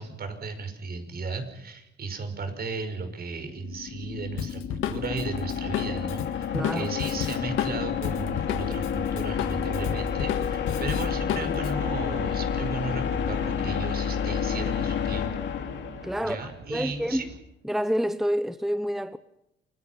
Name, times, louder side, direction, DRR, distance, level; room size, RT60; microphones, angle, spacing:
voice 1, 0.0-15.3 16.2-17.3, right 3 dB, 50° right, 5.3 m, -35 dB
sound 1, 3.4-16.5, left 7 dB, 65° left, 2.7 m, -30 dB
Drum kit, 4.4-8.9 9.2-11.7, left 10 dB, 90° left, 1.8 m, -32 dB
voice 2, 6.5-6.9 16.0-16.4 16.7-17.3 17.6-19.2, equal, ahead, 0.8 m, -27 dB
sound 2, 8.3-17.4, right 5 dB, 85° right, 2.6 m, -48 dB
28.5 x 21.0 x 5.8 m
cardioid pair, 90°, 20 cm